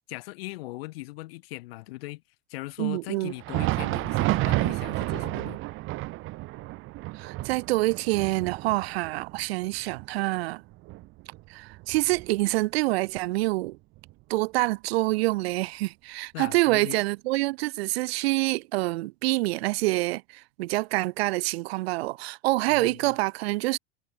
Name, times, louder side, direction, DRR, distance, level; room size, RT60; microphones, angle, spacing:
voice 1, 0.1-2.2 2.5-5.6 16.3-17.0 22.7-23.2, left 20 dB, 75° left, 1.1 m, -39 dB
voice 2, 2.8-3.3 7.1-10.6 11.5-13.8 14.3-23.8, right 21 dB, 85° right, 0.5 m, -26 dB
Thunder, 3.3-12.7 13.1-13.3 13.9-14.1 15.1-15.2, right 20 dB, 45° right, 0.8 m, -31 dB
supercardioid pair, 130°, 30 cm